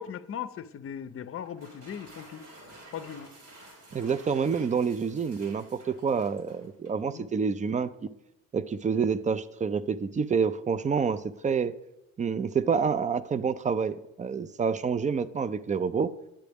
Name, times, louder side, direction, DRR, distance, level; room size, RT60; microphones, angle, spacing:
voice 1, 0.0-2.5 2.9-3.3 7.1-7.3, left 8 dB, 45° left, 13 dB, 0.6 m, -39 dB
sound 1, 1.4-7.0, right 1 dB, 85° right, 3.3 m, -51 dB
voice 2, 3.9-7.9 8.5-11.7 12.2-16.1, right 6 dB, 25° right, 15 dB, 0.4 m, -28 dB
10.0 x 8.2 x 3.5 m, 0.86 s
cardioid pair, 90°, 30 cm